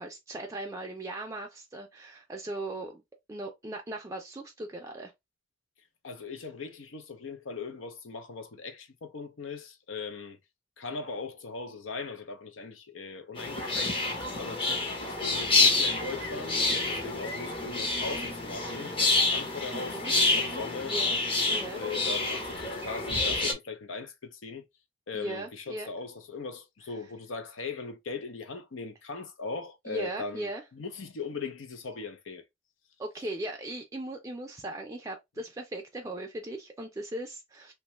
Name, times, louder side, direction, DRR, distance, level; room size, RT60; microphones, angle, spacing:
voice 1, 0.0-3.0 3.3-5.1 19.7-20.6 20.9-21.2 21.5-21.8 25.1-25.9 29.9-30.6 33.0-37.7, right 1 dB, 15° right, 0.4 m, -38 dB
voice 2, 6.0-10.4 10.8-14.0 14.4-20.9 21.4-24.7 25.1-32.4, left 4 dB, 85° left, 0.6 m, -39 dB
sound 1, 13.4-23.5, left 3 dB, 30° left, 0.7 m, -28 dB
2.9 x 2.2 x 2.9 m
head